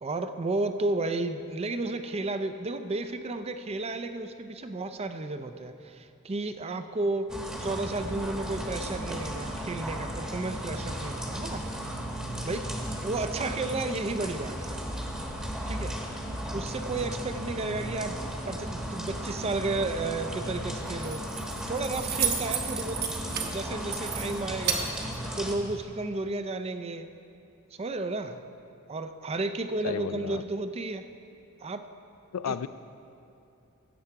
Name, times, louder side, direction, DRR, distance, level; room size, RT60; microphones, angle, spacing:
voice 1, 0.0-12.0 12.4-12.6 13.0-14.8 15.7-16.0 16.5-24.9 25.4-27.1 27.7-28.4 28.9-31.0 31.6-31.8 32.5-32.7, right 2 dB, 30° right, 9 dB, 0.5 m, -33 dB
sound 1, 7.3-25.6, equal, 5° right, 1.0 m, -35 dB
Keys jangling, 20.8-25.8, right 6 dB, 45° right, 1.1 m, -34 dB
voice 2, 29.8-30.4 32.3-32.7, left 7 dB, 75° left, 13 dB, 0.4 m, -33 dB
15.5 x 7.7 x 4.6 m, 2.7 s
head